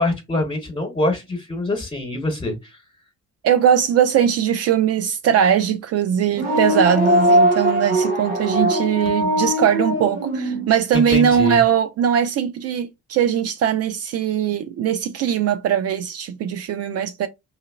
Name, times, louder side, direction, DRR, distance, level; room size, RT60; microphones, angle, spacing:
voice 1, 0.0-2.7 10.9-11.6, left 2 dB, 15° left, 1.1 m, -24 dB
voice 2, 3.4-17.3, right 9 dB, 40° right, 0.4 m, -20 dB
sound 1, 6.3-10.7, equal, 80° right, 1.1 m, -20 dB
5.2 x 2.8 x 2.3 m
figure-of-eight pair, 40°, 40 cm